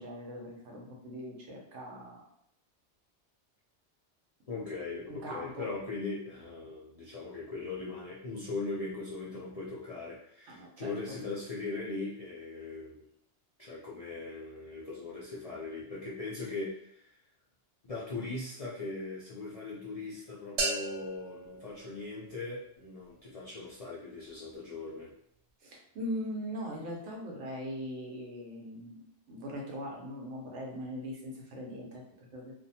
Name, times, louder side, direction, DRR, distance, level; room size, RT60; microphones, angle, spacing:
voice 1, 0.0-2.2 5.1-5.7 10.5-11.1 25.6-29.0 29.3-32.5, equal, 90° right, -1 dB, 1.1 m, -40 dB
voice 2, 4.5-13.1 13.6-17.2 17.8-25.1, left 3 dB, 55° left, -6 dB, 0.4 m, -40 dB
sound 1, 20.6-22.6, right 3 dB, 55° right, 0.5 m, -36 dB
2.6 x 2.2 x 2.7 m, 0.72 s
omnidirectional pair, 1.2 m